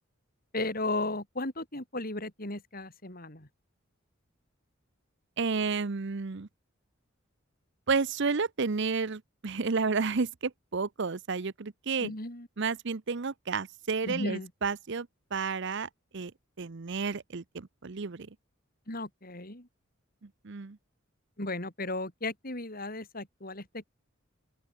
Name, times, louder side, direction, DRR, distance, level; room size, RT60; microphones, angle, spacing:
voice 1, 0.5-3.5 12.0-12.5 14.0-14.5 18.9-19.7 21.4-23.8, left 2 dB, 45° left, 4.9 m, -35 dB
voice 2, 5.4-6.5 7.9-12.1 12.6-16.3 16.6-18.3 20.2-20.8, right 4 dB, 60° right, 0.7 m, -31 dB
open air
head